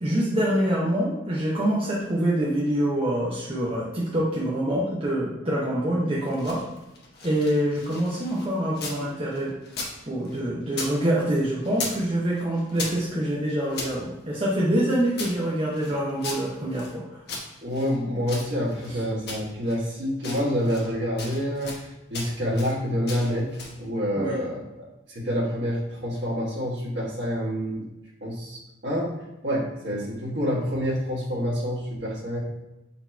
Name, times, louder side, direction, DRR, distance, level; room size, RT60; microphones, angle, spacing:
voice 1, 0.0-6.6 7.2-9.5 10.1-17.0 18.9-19.0 24.2-24.4, right 1 dB, 30° right, -6 dB, 0.7 m, -25 dB
sound 1, 6.2-9.0 9.3-11.0 11.2-12.1 12.3-13.9 14.5-16.9 17.3-18.9 19.3-19.8 20.2-20.9 21.2-21.8 22.1-22.8 23.1-23.8, left 3 dB, 55° left, 0.9 m, -37 dB
voice 2, 17.6-21.7 22.1-23.5 23.8-24.6 25.1-27.8 28.2-29.1 29.4-32.4, equal, 60° right, -5 dB, 1.4 m, -27 dB
4.1 x 2.9 x 4.4 m, 0.98 s
head